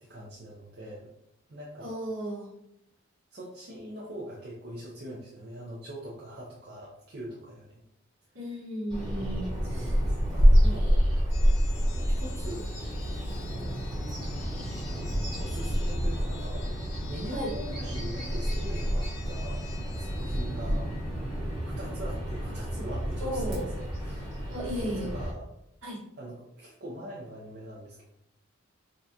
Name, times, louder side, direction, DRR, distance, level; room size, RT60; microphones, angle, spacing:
voice 1, 0.0-1.1 1.5-1.9 3.3-7.8 8.5-8.6 9.7-11.0 11.8-12.7 13.3-13.8 14.7-16.7 17.1-19.6 20.0-20.9 21.6-24.3 24.8-25.5 26.2-28.0, right 1 dB, 50° right, -5 dB, 0.5 m, -42 dB
voice 2, 1.8-2.5 8.3-10.0 17.3-17.5 23.2-23.6 24.5-25.1 25.8-26.0, equal, 65° right, -4 dB, 1.2 m, -34 dB
Bird vocalization bird call bird song, 8.9-25.3, equal, 20° right, 1.3 m, -28 dB
sound 1, 11.3-21.1, left 7 dB, 55° left, 0.6 m, -49 dB
3.8 x 2.2 x 2.7 m, 0.80 s
head